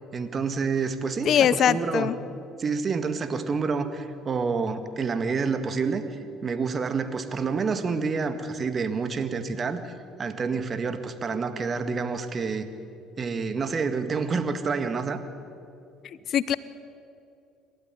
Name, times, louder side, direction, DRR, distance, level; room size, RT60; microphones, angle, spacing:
voice 1, 0.1-2.1 2.6-9.9 10.2-12.7 13.2-15.2, right 5 dB, 40° right, 9 dB, 2.0 m, -28 dB
voice 2, 1.2-2.2 16.3-16.6, left 9 dB, 55° left, 18 dB, 0.7 m, -21 dB
27.5 x 12.5 x 9.5 m, 2.6 s
hypercardioid pair, 60°, 0 cm